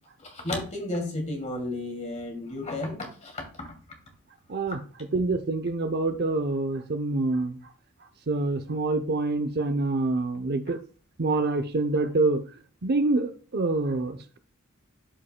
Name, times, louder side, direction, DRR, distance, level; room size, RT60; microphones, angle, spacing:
voice 1, 0.2-3.7, left 2 dB, 30° left, 2.4 m, -33 dB
voice 2, 4.5-7.6 8.3-10.8 11.2-12.4 12.8-14.4, right 3 dB, 45° right, 0.7 m, -26 dB
12.5 x 5.3 x 2.2 m
head